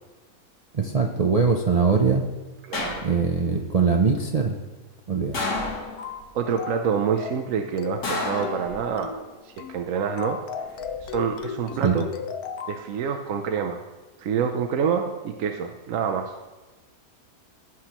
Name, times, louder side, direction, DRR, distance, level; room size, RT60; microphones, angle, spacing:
voice 1, 0.7-2.2 3.0-4.6 5.1-5.4 11.8-12.0, right 5 dB, 85° right, 1 dB, 0.3 m, -22 dB
sound 1, 2.7-3.5 5.3-6.3 8.0-9.2 10.6-11.1, left 2 dB, 55° left, 1.7 m, -31 dB
voice 2, 2.7-3.0 6.3-9.1 9.4-10.4 11.0-12.1 12.7-13.8 14.2-16.3, right 7 dB, 65° right, 4 dB, 0.9 m, -27 dB
sound 2, 6.0-6.3 6.6-6.9 7.2-7.5 7.8-8.1 8.4-8.7 9.0-9.3 9.6-9.8 10.2-12.8, left 6 dB, 70° left, 1.1 m, -35 dB
15.5 x 6.3 x 3.0 m, 1.2 s
omnidirectional pair, 1.7 m